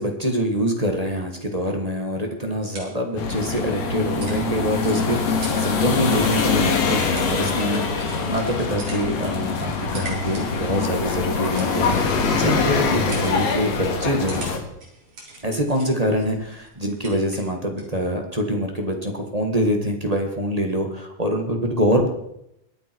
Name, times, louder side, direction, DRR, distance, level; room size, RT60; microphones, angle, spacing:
voice 1, 0.0-7.8 8.2-14.6 15.4-22.1, equal, 20° right, 3 dB, 1.0 m, -25 dB
sound 1, 2.3-18.0, right 2 dB, 50° right, 4.8 m, -43 dB
sound 2, 3.2-14.6, left 5 dB, 60° left, 3.0 m, -24 dB
22.5 x 9.4 x 4.6 m, 0.79 s
omnidirectional pair, 3.6 m